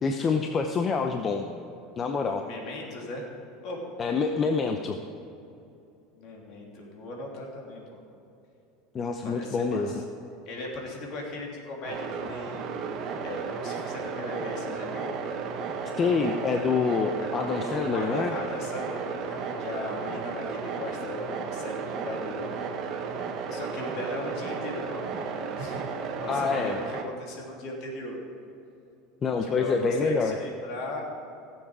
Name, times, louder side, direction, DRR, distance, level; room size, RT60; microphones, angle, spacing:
voice 1, 0.0-1.5 2.0-2.5 4.0-5.0 8.9-9.9 16.0-18.3 26.3-26.8 29.2-30.4, left 5 dB, 30° left, 5 dB, 0.8 m, -26 dB
voice 2, 2.4-3.3 3.6-3.8 6.1-8.0 9.2-10.0 10.5-12.8 13.2-15.1 17.2-17.3 17.6-22.9 23.4-25.8 26.2-28.2 29.4-31.0, left 2 dB, 60° left, -1 dB, 3.2 m, -38 dB
sound 1, 11.8-27.0, right 5 dB, 50° right, 1.4 m, -34 dB
16.5 x 7.4 x 4.9 m, 2.8 s
supercardioid pair, 105°, 0 cm